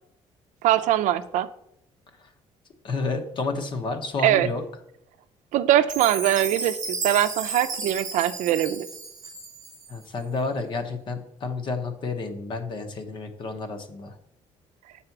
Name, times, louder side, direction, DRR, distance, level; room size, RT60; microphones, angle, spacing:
voice 1, 0.6-1.5 4.2-4.5 5.5-8.9, right 12 dB, 80° right, 13 dB, 0.5 m, -22 dB
voice 2, 2.8-4.6 9.9-14.2, left 3 dB, 40° left, 6 dB, 0.9 m, -30 dB
Chime, 5.9-10.1, right 4 dB, 30° right, 1.0 m, -33 dB
7.9 x 4.2 x 5.9 m, 0.78 s
cardioid pair, 175°, 13 cm